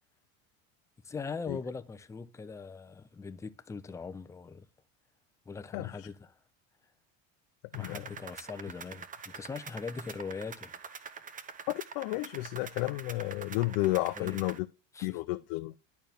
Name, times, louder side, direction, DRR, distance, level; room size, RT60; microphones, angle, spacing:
voice 1, 1.0-4.7 5.5-6.4 7.7-10.8 14.2-14.4 14.9-15.2, left 5 dB, 10° left, 0.4 m, -41 dB
voice 2, 5.7-6.1 7.7-8.0 11.7-14.7 15.0-15.7, left 20 dB, 70° left, 0.6 m, -32 dB
sound 1, 7.7-14.6, right 6 dB, 20° right, 0.7 m, -46 dB
10.5 x 4.4 x 3.4 m
supercardioid pair, 125°, 39 cm